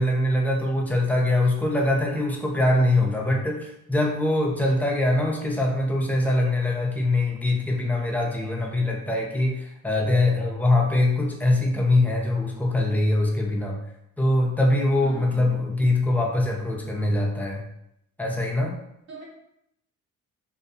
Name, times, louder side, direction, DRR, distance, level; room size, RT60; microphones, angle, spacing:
voice 1, 0.0-13.8 14.2-17.7 18.2-18.8, left 2 dB, 5° left, -1 dB, 0.5 m, -23 dB
voice 2, 15.0-15.5 19.1-19.2, right 3 dB, 65° right, -5 dB, 1.3 m, -41 dB
2.6 x 2.2 x 2.6 m, 0.79 s
cardioid pair, 90°, 30 cm